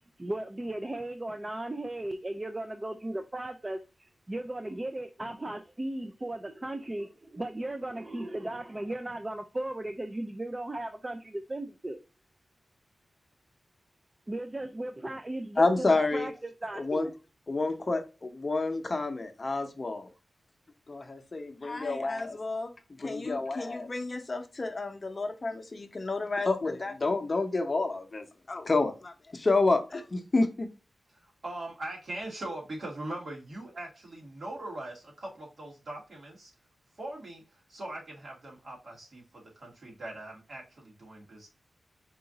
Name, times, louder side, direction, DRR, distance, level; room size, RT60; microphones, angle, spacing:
voice 1, 0.2-12.0 14.3-17.1, right 1 dB, 20° right, 0.4 m, -36 dB
voice 2, 15.6-16.3 16.7-17.1 17.5-20.1 20.9-22.7 23.0-30.7, left 3 dB, 35° left, 0.7 m, -29 dB
voice 3, 31.1-36.5 37.0-41.5, right 1 dB, 60° right, 1.8 m, -41 dB
4.7 x 2.5 x 3.9 m
wide cardioid pair, 120°, 0 cm